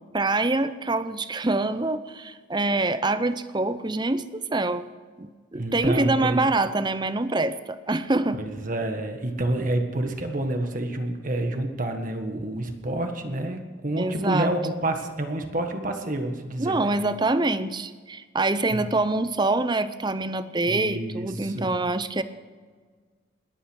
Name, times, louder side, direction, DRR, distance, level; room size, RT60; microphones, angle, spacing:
voice 1, 0.1-4.9 5.2-8.4 14.0-14.5 16.6-22.2, right 2 dB, 20° right, 12 dB, 0.7 m, -25 dB
voice 2, 5.5-6.4 8.3-16.9 18.7-18.8 20.7-21.7, right 1 dB, 40° right, 5 dB, 1.6 m, -28 dB
20.5 x 9.3 x 6.3 m, 1.5 s
head